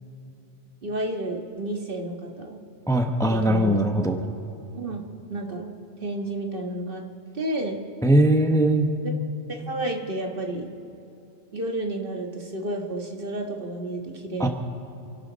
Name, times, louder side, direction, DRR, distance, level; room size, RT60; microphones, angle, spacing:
voice 1, 0.8-2.6 3.3-3.8 4.7-5.0 5.3-5.7 6.0-7.0 7.3-7.8 9.0-9.1 9.5-10.7 11.5-14.5, right 1 dB, 55° right, 2 dB, 1.7 m, -31 dB
voice 2, 2.9-4.2 8.0-9.0 14.4-14.5, right 1 dB, 5° left, 4 dB, 0.9 m, -20 dB
29.0 x 11.5 x 4.1 m, 2.8 s
omnidirectional pair, 1.2 m